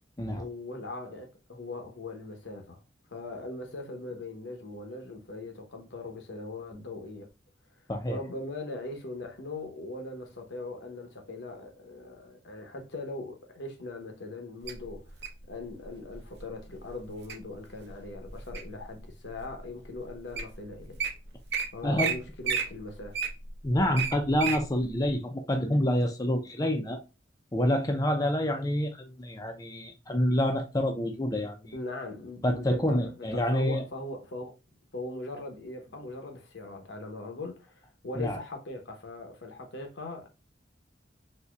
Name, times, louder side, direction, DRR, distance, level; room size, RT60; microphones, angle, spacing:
voice 1, 0.4-2.8 3.1-7.3 8.1-15.1 15.5-21.0 21.7-23.2 31.7-34.6 34.9-40.3, left 2 dB, 80° left, 1.0 m, -40 dB
Wild animals, 14.7-15.4 16.1-16.4 16.9-17.3 17.9-18.8 19.4-19.5 20.1-20.2 20.3-20.5 20.8-21.1 21.5-21.6 22.0-22.1 22.4-24.6 25.1-25.2, right 6 dB, 65° right, 0.8 m, -31 dB
voice 2, 21.8-22.1 23.6-27.0 27.5-31.8 32.4-33.8 38.2-38.4, equal, 20° left, 0.5 m, -27 dB
4.1 x 2.7 x 2.3 m
head